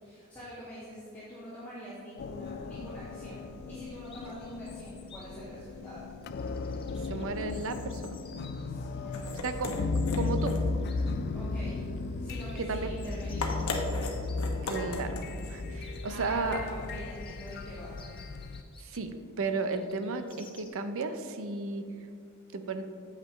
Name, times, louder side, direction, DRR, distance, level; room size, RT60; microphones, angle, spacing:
voice 1, 0.0-6.1 8.6-9.7 11.3-11.9 12.1-13.6 16.1-18.0, equal, 10° left, -13 dB, 2.0 m, -45 dB
sound 1, 2.2-18.6, left 3 dB, 50° left, 0.3 m, -36 dB
Chirp tweet, 4.0-20.7, left 5 dB, 25° left, 0.8 m, -56 dB
voice 2, 7.1-8.2 9.4-9.7 10.1-10.6 11.6-11.7 12.6-13.0 14.6-15.2 15.5-16.6 18.8-21.9 22.5-22.8, right 3 dB, 65° right, 9 dB, 0.6 m, -33 dB
sound 2, 8.8-17.0, left 2 dB, 85° left, 1.0 m, -38 dB
8.3 x 7.4 x 3.2 m, 2.3 s
head